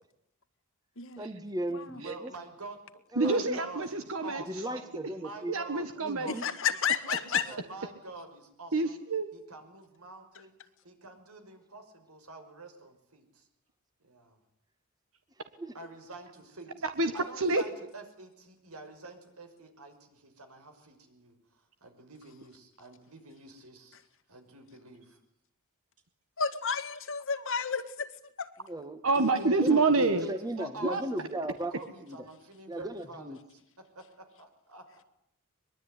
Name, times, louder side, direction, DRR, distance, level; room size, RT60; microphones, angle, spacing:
voice 1, 1.2-2.3 3.1-3.6 4.2-5.5 6.0-6.5 7.4-7.6 15.6-15.7 28.6-29.0 29.4-31.7 32.0-32.2 32.7-33.4, right 1 dB, 20° right, 1.8 m, -37 dB
voice 2, 2.0-2.8 3.1-6.8 7.1-9.0 9.3-10.5 10.8-13.5 14.0-14.4 15.7-16.7 17.1-21.3 21.8-24.0 24.3-25.2 29.4-29.9 30.2-31.4 31.7-33.6 33.9-35.1, right 3 dB, 80° right, 5.9 m, -47 dB
voice 3, 3.2-4.6 5.5-6.3 8.7-9.3 17.0-17.6 29.0-30.3 30.8-31.0, right 3 dB, 65° right, 1.7 m, -27 dB
voice 4, 6.3-7.5 26.4-28.1 28.4-28.5, left 6 dB, 60° left, 1.9 m, -31 dB
23.0 x 22.5 x 9.9 m
head